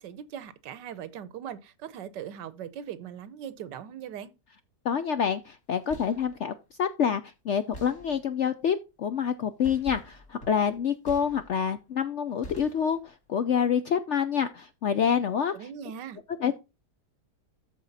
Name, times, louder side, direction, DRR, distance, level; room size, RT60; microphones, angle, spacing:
voice 1, 0.0-4.3 15.5-16.2, right 9 dB, 85° right, 1.5 m, -40 dB
voice 2, 4.8-15.7 16.4-16.6, left 7 dB, 65° left, 0.7 m, -27 dB
sound 1, 5.7-6.4 7.7-8.5 9.6-11.8 12.4-13.2, equal, 45° left, 2.7 m, -46 dB
13.0 x 4.5 x 4.0 m
omnidirectional pair, 1.8 m